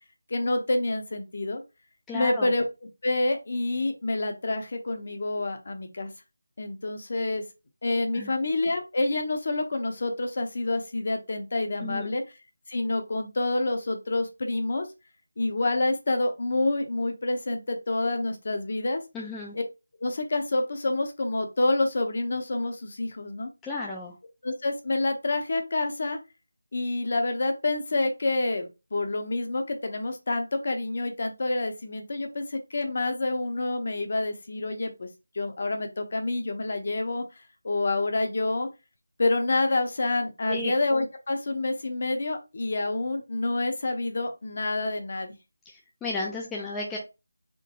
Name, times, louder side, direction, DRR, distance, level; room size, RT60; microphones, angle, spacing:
voice 1, 0.3-1.6 2.1-2.6 3.0-6.1 6.6-7.4 7.8-12.2 12.7-14.9 15.4-19.0 19.5-19.6 20.0-23.5 24.4-26.2 26.7-35.1 35.3-37.2 37.6-38.7 39.2-45.3, left 2 dB, 45° left, 5 dB, 0.8 m, -28 dB
voice 2, 2.1-2.5 8.1-8.3 11.8-12.1 19.1-19.6 23.6-24.1 40.5-40.7 45.7-47.0, left 2 dB, 5° left, -4 dB, 0.5 m, -34 dB
3.8 x 2.7 x 3.7 m, 0.26 s
figure-of-eight pair, 170°, 0 cm